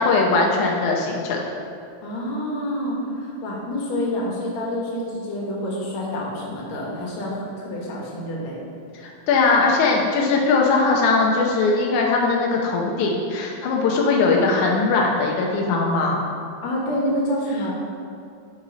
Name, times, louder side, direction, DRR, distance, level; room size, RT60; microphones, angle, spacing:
voice 1, 0.0-1.4 9.0-16.2, left 3 dB, 85° left, -1 dB, 1.7 m, -20 dB
voice 2, 2.0-8.6 16.6-17.7, equal, 60° left, -3 dB, 2.1 m, -27 dB
10.5 x 5.5 x 3.9 m, 2.5 s
omnidirectional pair, 4.6 m